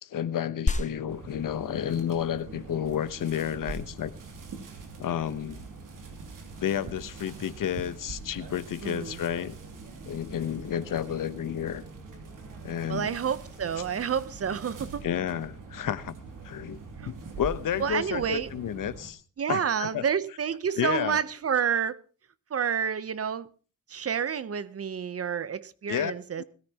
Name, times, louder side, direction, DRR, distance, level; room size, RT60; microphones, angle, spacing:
voice 1, 0.0-4.1 5.0-5.6 6.6-9.5 10.0-11.8 12.6-13.2 15.0-16.2 16.4-16.8 17.0-19.2 19.5-20.1 20.8-21.2 25.9-26.1 26.4-26.5, left 9 dB, 80° left, 1.0 m, -31 dB
sound 1, 0.7-10.6, left 2 dB, 25° left, 1.1 m, -39 dB
sound 2, 1.1-19.1, right 4 dB, 85° right, 2.8 m, -43 dB
voice 2, 8.8-9.2 12.9-15.0 17.0-17.1 17.8-18.5 19.4-22.0 22.5-23.5 23.9-26.4, right 7 dB, 50° right, 0.8 m, -29 dB
20.5 x 13.5 x 2.9 m
wide cardioid pair, 120°, 31 cm